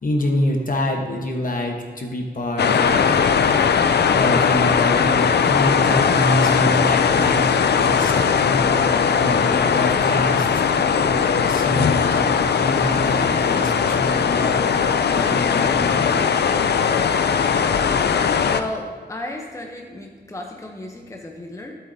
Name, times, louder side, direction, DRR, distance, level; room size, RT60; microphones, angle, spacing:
voice 1, 0.0-3.1 3.7-3.8 4.1-7.5 7.8-10.6 11.0-16.0, left 1 dB, 50° left, 2 dB, 1.2 m, -25 dB
sound 1, 2.6-18.6, left 6 dB, 70° left, 0.4 m, -19 dB
voice 2, 17.9-21.7, left 1 dB, 15° left, 1 dB, 0.8 m, -34 dB
12.5 x 7.9 x 2.7 m, 1.5 s
wide cardioid pair, 120°, 18 cm